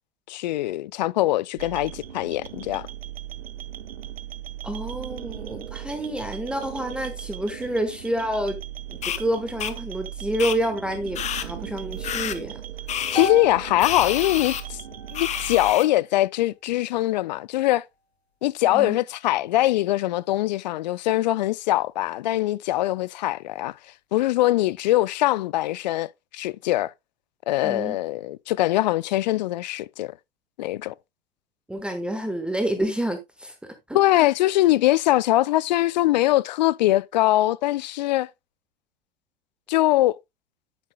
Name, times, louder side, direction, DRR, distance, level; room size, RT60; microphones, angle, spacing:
voice 1, 0.3-2.9 13.1-14.8 15.1-17.8 18.4-23.8 24.1-26.9 27.5-30.2 30.6-30.9 33.9-38.3 39.7-40.1, left 16 dB, 45° left, 0.4 m, -22 dB
sound 1, 1.6-15.7, right 11 dB, 65° right, 0.8 m, -37 dB
voice 2, 4.6-8.6 9.0-12.6 18.7-19.0 27.6-28.0 31.7-34.3, right 1 dB, 5° right, 1.1 m, -28 dB
sound 2, 9.0-9.2 9.6-9.7 10.4-10.6 11.1-11.5 12.0-12.4 12.9-13.3 13.8-14.6 15.1-15.8, left 10 dB, 20° left, 0.9 m, -29 dB
sound 3, 13.1-17.3, left 1 dB, 80° left, 2.1 m, -37 dB
10.5 x 8.1 x 2.2 m
figure-of-eight pair, 95°, 31 cm